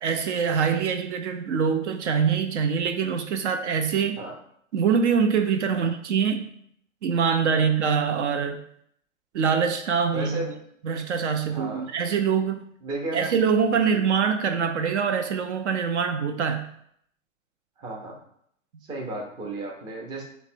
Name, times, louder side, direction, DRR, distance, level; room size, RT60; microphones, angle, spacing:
voice 1, 0.0-4.2 4.7-6.5 7.0-8.6 9.3-10.4 10.8-12.6 13.1-16.7, right 6 dB, 60° right, 7 dB, 0.5 m, -24 dB
voice 2, 10.1-10.6 11.5-11.9 12.8-13.3 13.7-13.9 17.8-18.2 18.9-20.2, right 2 dB, 10° right, -1 dB, 0.5 m, -34 dB
3.2 x 2.1 x 4.2 m, 0.68 s
hypercardioid pair, 110°, 39 cm